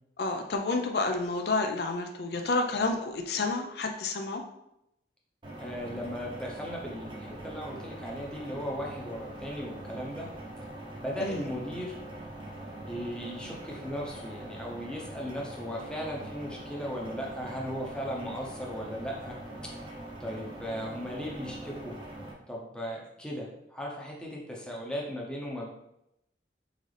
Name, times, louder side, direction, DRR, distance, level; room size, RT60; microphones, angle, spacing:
voice 1, 0.2-4.4 11.2-11.4, left 3 dB, 60° left, 4 dB, 0.4 m, -30 dB
sound 1, 5.4-22.3, right 1 dB, 30° right, 0.8 m, -43 dB
voice 2, 5.6-10.3 11.0-12.0 12.9-19.3 20.2-21.9 22.5-25.7, equal, 5° left, -2 dB, 0.7 m, -37 dB
3.9 x 3.7 x 3.3 m, 0.82 s
head